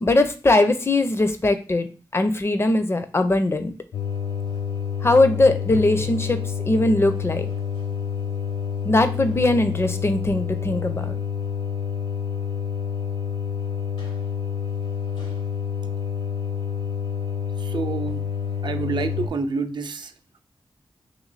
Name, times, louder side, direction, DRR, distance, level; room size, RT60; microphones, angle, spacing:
voice 1, 0.0-1.9 2.1-3.7 5.0-6.4 6.6-7.5 8.8-11.2, left 2 dB, 30° left, 9 dB, 0.5 m, -20 dB
sound 1, 3.9-19.3, left 7 dB, 75° left, 0.9 m, -28 dB
voice 2, 17.7-18.2 18.6-20.1, right 4 dB, 60° right, 8 dB, 0.5 m, -27 dB
3.0 x 3.0 x 4.0 m, 0.37 s
wide cardioid pair, 85°, 9 cm